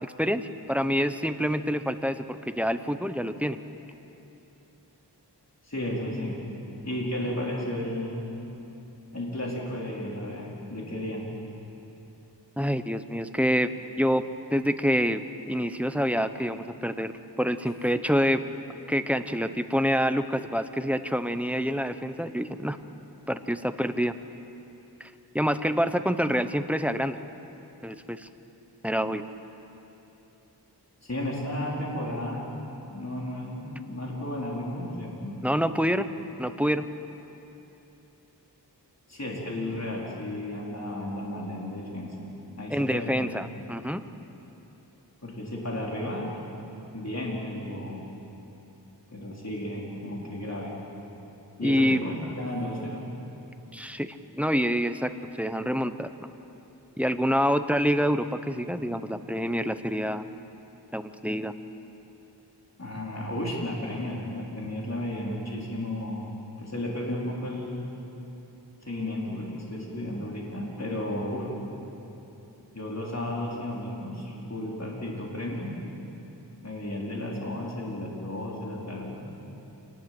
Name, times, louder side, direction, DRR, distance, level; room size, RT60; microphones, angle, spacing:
voice 1, 0.0-3.6 12.6-13.7 14.0-14.2 14.5-15.2 15.5-17.1 17.4-18.4 18.9-22.8 23.3-24.1 25.0-25.1 25.3-27.2 27.8-28.3 28.8-29.2 35.4-36.1 36.4-36.8 42.7-44.0 51.6-52.0 53.7-55.1 55.4-56.3 57.0-60.2 60.9-61.5, equal, 5° right, 10 dB, 0.9 m, -26 dB
voice 2, 5.6-6.4 6.8-8.3 9.1-11.2 31.0-32.5 32.9-35.4 39.1-42.1 42.6-43.3 45.2-46.4 46.9-48.1 49.1-50.8 51.6-53.0 62.8-66.3 66.6-67.9 68.8-71.5 72.7-75.8 76.6-79.2, left 1 dB, 40° left, -3 dB, 4.3 m, -33 dB
27.5 x 19.5 x 7.9 m, 3.0 s
wide cardioid pair, 65°, 42 cm